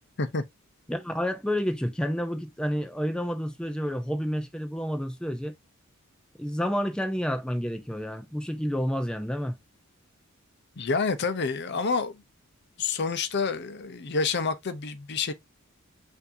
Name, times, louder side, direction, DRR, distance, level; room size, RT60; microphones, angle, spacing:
voice 1, 0.9-5.5 6.4-9.6, equal, 5° left, 0.6 m, -29 dB
voice 2, 10.8-12.2 12.8-15.3, left 4 dB, 55° left, 0.7 m, -28 dB
7.0 x 2.7 x 2.6 m
head